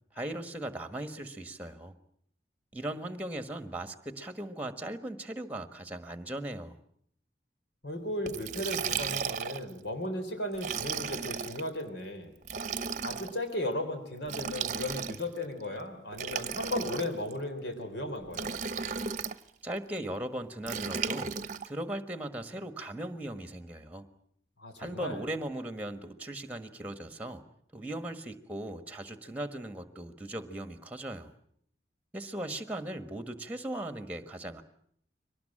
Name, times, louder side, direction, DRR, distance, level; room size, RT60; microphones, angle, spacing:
voice 1, 0.1-2.0 2.7-6.8 19.6-21.3 21.7-24.1 24.8-27.4 27.7-31.3 32.1-34.6, right 1 dB, 10° right, 10 dB, 1.4 m, -38 dB
voice 2, 7.8-12.3 13.0-18.5 24.6-25.2, left 1 dB, 75° left, 5 dB, 3.7 m, -35 dB
Liquid, 8.3-9.7 10.5-11.6 12.4-13.3 14.2-15.4 16.1-17.3 18.3-19.4 20.7-21.7, right 6 dB, 40° right, 0.9 m, -35 dB
23.5 x 19.5 x 8.8 m, 0.67 s
head